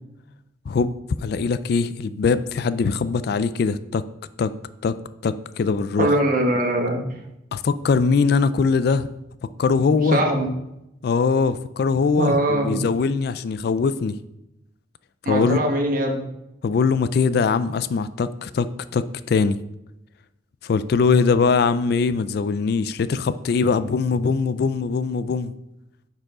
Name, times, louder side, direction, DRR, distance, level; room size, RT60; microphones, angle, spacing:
voice 1, 1.2-4.0 4.4-4.5 4.8-5.0 5.2-6.1 7.5-9.1 9.6-10.2 11.0-14.2 15.3-15.6 16.6-19.6 20.6-25.5, left 5 dB, 55° left, 15 dB, 0.3 m, -21 dB
voice 2, 6.0-7.0 9.9-10.5 12.2-12.8 15.2-16.2, right 1 dB, 45° right, 1 dB, 1.3 m, -21 dB
9.4 x 4.7 x 3.8 m, 0.89 s
head